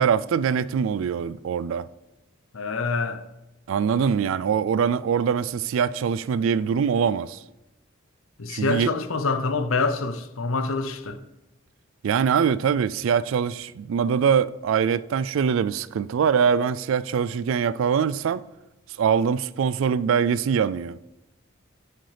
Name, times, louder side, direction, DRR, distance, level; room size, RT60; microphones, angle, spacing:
voice 1, 0.0-1.9 3.7-7.4 8.5-8.9 12.0-18.4 19.0-21.0, right 7 dB, 75° right, 0.3 m, -23 dB
voice 2, 2.5-3.2 8.4-11.2, left 3 dB, 80° left, 0.7 m, -26 dB
8.3 x 7.9 x 3.3 m
head